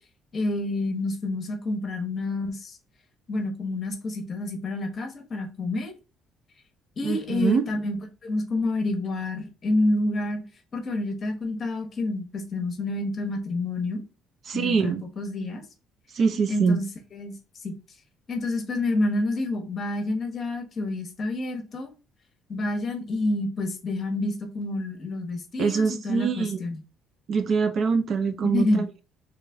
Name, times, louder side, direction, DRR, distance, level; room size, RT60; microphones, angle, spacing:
voice 1, 0.3-2.8 3.3-6.0 7.0-10.4 10.7-14.0 14.5-15.6 16.5-17.3 17.6-17.7 18.3-21.9 22.5-26.8 28.4-28.9, left 2 dB, 35° left, 0.9 m, -28 dB
voice 2, 7.0-7.6 14.5-15.0 16.1-16.8 25.6-26.6 27.3-29.0, right 5 dB, 45° right, 0.4 m, -24 dB
3.1 x 3.0 x 3.4 m
cardioid pair, 140°, 0 cm